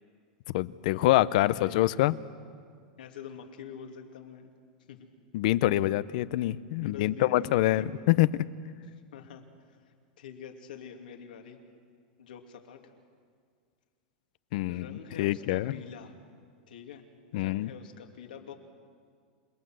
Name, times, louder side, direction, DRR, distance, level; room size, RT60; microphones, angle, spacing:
voice 1, 0.5-2.1 5.3-8.3 14.5-15.7 17.3-17.7, left 16 dB, 60° left, 17 dB, 0.7 m, -25 dB
voice 2, 1.4-1.8 3.0-4.5 4.9-5.1 6.8-8.0 8.9-9.8 10.2-11.6 12.2-12.9 14.7-16.2 16.7-17.0 17.3-18.5, left 7 dB, 90° left, 3 dB, 2.6 m, -45 dB
27.5 x 19.0 x 7.8 m, 2.1 s
supercardioid pair, 145°, 5 cm